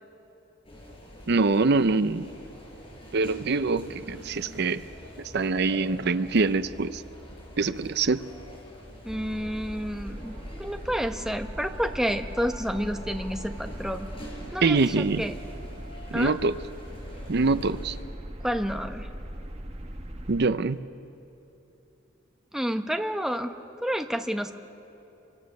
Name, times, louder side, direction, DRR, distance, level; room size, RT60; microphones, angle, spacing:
sound 1, 0.6-18.0, equal, 30° left, 5.6 m, -46 dB
voice 1, 1.3-2.3 3.1-4.8 5.3-7.0 7.6-8.2 14.6-15.2 16.1-16.5 17.3-18.0 20.3-20.8, right 3 dB, 60° right, 13 dB, 0.7 m, -24 dB
sound 2, 8.4-9.1 11.2-16.3, right 2 dB, 60° left, 7.5 m, -51 dB
voice 2, 9.0-14.1 14.5-15.3 16.1-16.3 18.4-19.1 22.5-23.6 23.8-24.5, equal, 5° right, 6 dB, 0.9 m, -30 dB
sound 3, 9.1-20.5, equal, 35° right, 1.4 m, -40 dB
28.0 x 24.0 x 6.6 m, 3.0 s
head